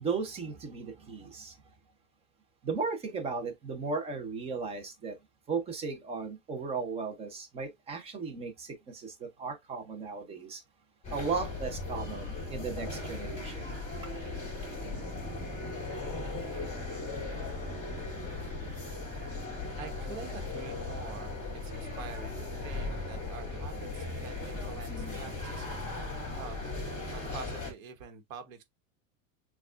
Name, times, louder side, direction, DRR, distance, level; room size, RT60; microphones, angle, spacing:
voice 1, 0.0-1.6 2.6-5.2 5.5-10.6 11.1-13.7, right 4 dB, 15° right, 0.5 m, -36 dB
sound 1, 11.0-27.7, left 2 dB, 15° left, 2.0 m, -37 dB
voice 2, 19.8-21.4 21.6-28.6, right 6 dB, 85° right, 1.3 m, -47 dB
6.5 x 2.3 x 2.4 m
supercardioid pair, 155°, 39 cm